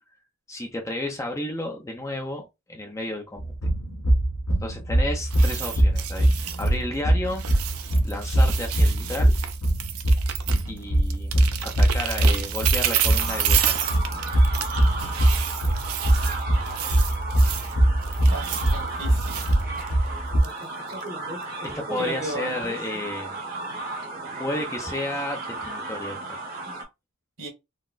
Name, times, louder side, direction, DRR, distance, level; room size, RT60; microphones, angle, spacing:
voice 1, 0.5-3.5 4.6-6.3 6.6-7.4 8.0-9.3 10.7-13.9 21.6-23.5 24.4-26.4, left 1 dB, 15° left, 0.5 m, -32 dB
sound 1, 3.4-20.4, right 1 dB, 75° left, 1.0 m, -22 dB
sound 2, 5.2-7.0 7.2-10.8 11.0-17.7 18.0-20.0 20.4-20.6 21.0-21.1, right 10 dB, 80° right, 0.5 m, -30 dB
sound 3, 13.2-26.8, right 2 dB, 45° right, 1.0 m, -34 dB
voice 2, 18.3-19.5 22.0-22.5 27.4-27.5, right 2 dB, 60° right, 1.4 m, -35 dB
4.0 x 2.0 x 2.4 m
head